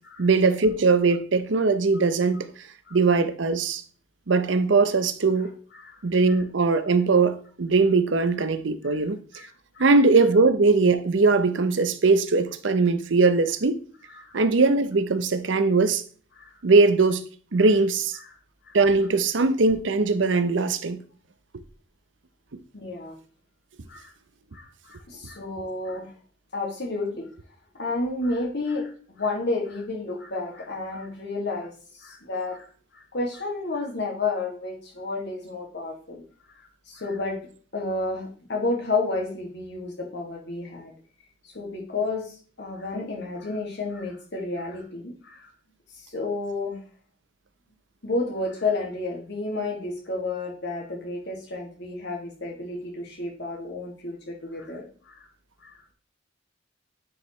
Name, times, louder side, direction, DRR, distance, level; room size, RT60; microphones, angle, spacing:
voice 1, 0.2-2.5 2.9-3.8 4.3-5.5 6.0-9.2 9.8-13.8 14.3-16.0 16.6-17.2 17.5-18.2 18.7-21.0, right 3 dB, 70° right, 0.7 m, -20 dB
voice 2, 9.3-9.9 14.1-14.3 16.4-16.6 18.2-18.3 18.7-18.8 22.7-23.1 23.9-24.1 24.5-26.1 26.5-27.3 27.7-32.7 32.9-36.2 36.5-36.6 36.9-37.4 37.7-40.9 41.4-45.5 45.9-46.8 48.0-55.3 55.6-55.8, left 3 dB, 65° left, 2.2 m, -31 dB
9.6 x 4.9 x 3.1 m
head